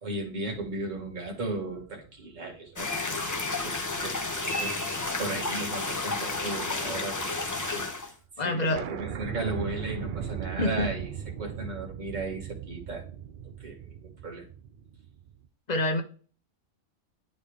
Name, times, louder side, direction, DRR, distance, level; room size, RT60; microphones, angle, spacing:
voice 1, 0.0-2.9 3.6-7.9 8.4-11.1 11.4-13.0 13.4-14.4, right 2 dB, 35° right, -1 dB, 1.8 m, -36 dB
sound 1, 0.5-3.1 3.6-3.7 5.2-5.6 5.8-7.3 7.5-7.6 7.8-7.9 8.2-8.3 8.7-15.5, right 8 dB, 60° right, 0.5 m, -39 dB
sound 2, 2.8-8.1, left 3 dB, 20° left, 0.5 m, -31 dB
voice 2, 8.4-8.9 10.6-10.9 15.7-16.0, left 2 dB, 35° left, 6 dB, 0.9 m, -26 dB
9.5 x 4.0 x 3.4 m, 0.39 s
omnidirectional pair, 1.4 m